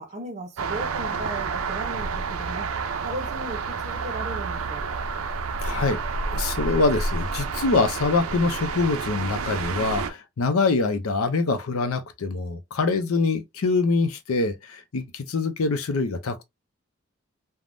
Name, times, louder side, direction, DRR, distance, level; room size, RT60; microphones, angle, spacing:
voice 1, 0.0-2.7 3.0-5.0, right 1 dB, 35° right, 0.7 m, -36 dB
sound 1, 0.6-10.1, right 4 dB, 85° right, 0.4 m, -29 dB
voice 2, 5.6-6.0 6.3-16.4, left 3 dB, 85° left, 0.5 m, -24 dB
3.4 x 2.0 x 2.5 m
head